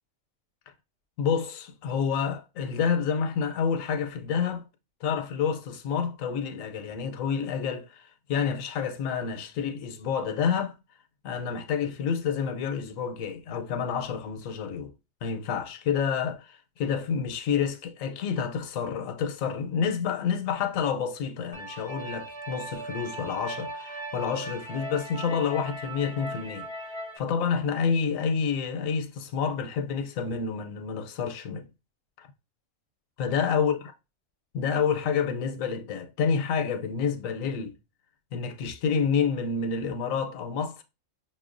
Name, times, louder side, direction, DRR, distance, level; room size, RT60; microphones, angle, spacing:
voice 1, 1.2-4.6 5.0-10.7 11.2-14.9 15.2-26.7 27.2-31.7 32.2-32.3 33.2-33.8 34.5-37.7 38.3-40.8, left 6 dB, 85° left, 1.0 m, -28 dB
sound 1, 21.5-27.2, right 2 dB, 40° right, 0.4 m, -38 dB
5.8 x 2.2 x 2.5 m
omnidirectional pair, 1.4 m